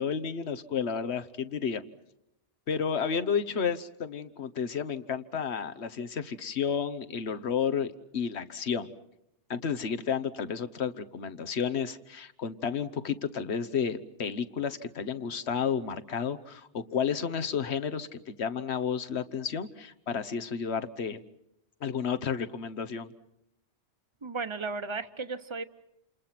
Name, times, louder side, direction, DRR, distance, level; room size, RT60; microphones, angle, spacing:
voice 1, 0.0-1.8 2.7-8.9 9.5-21.2 21.8-23.1, left 7 dB, 70° left, 10 dB, 1.4 m, -31 dB
voice 2, 24.2-25.6, right 4 dB, 25° right, 11 dB, 1.0 m, -35 dB
28.5 x 28.5 x 5.9 m, 0.82 s
omnidirectional pair, 1.2 m